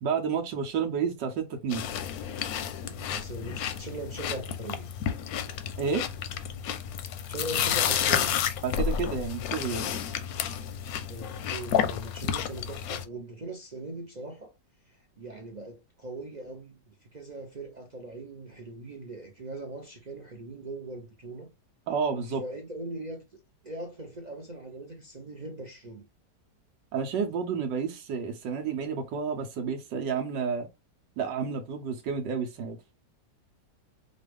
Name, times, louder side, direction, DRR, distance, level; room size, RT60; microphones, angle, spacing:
voice 1, 0.0-1.9 5.8-6.1 8.6-9.9 21.9-22.4 26.9-30.7 31.2-32.8, right 6 dB, 85° right, 1.4 m, -30 dB
sound 1, 1.7-13.0, left 8 dB, 70° left, 0.9 m, -31 dB
voice 2, 2.9-4.9 7.3-8.4 11.1-14.5 14.9-21.5 22.3-26.1, right 2 dB, 65° right, 0.4 m, -40 dB
5.2 x 2.3 x 3.3 m
omnidirectional pair, 1.9 m